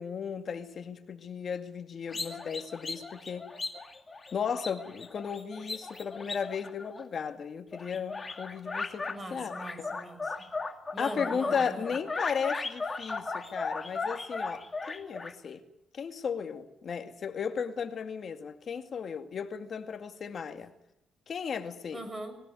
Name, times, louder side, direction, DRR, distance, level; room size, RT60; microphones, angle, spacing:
voice 1, 0.0-3.5 4.3-9.5 11.0-15.6 15.9-20.7 21.3-22.0, left 6 dB, 50° left, 2.2 m, -35 dB
sound 1, 2.1-7.4 7.7-9.2 9.5-15.3, left 3 dB, 25° left, 2.3 m, -37 dB
voice 2, 9.1-10.5 10.9-11.9 21.9-22.4, right 1 dB, 20° right, 6.0 m, -41 dB
20.0 x 18.5 x 9.4 m
cardioid pair, 90°, 0 cm